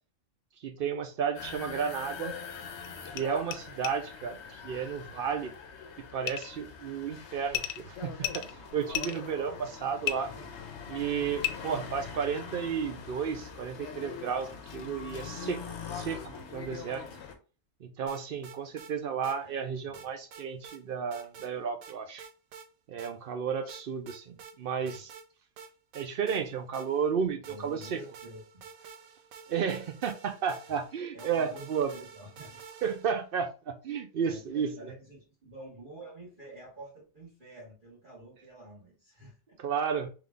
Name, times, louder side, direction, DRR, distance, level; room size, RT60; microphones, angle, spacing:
voice 1, 0.6-2.3 3.1-5.5 6.1-10.3 10.9-17.0 17.8-22.3 22.9-25.1 25.9-28.0 29.5-31.9 32.8-34.7 39.6-40.1, right 7 dB, 60° right, 0.6 m, -33 dB
sound 1, 1.3-17.3, left 6 dB, 60° left, 1.0 m, -43 dB
sound 2, 2.8-2.9 3.1-3.2 3.5-3.6 3.8-3.9 6.3-6.5 7.5-7.8 8.2-9.2 10.0-10.1 11.4-11.5, left 12 dB, 80° left, 1.0 m, -32 dB
voice 2, 10.0-10.5 19.4-20.0 24.8-25.0 27.4-28.6 31.1-32.6 34.2-39.6, right 1 dB, 40° right, 1.5 m, -49 dB
sound 3, 18.1-18.9 19.2-19.4 19.9-20.8 21.1-21.5 21.8-22.7 23.0-23.1 23.7-24.5 24.9-25.3 25.6-27.1 27.4-33.2, right 6 dB, 85° right, 1.1 m, -49 dB
3.8 x 3.2 x 3.4 m
omnidirectional pair, 1.4 m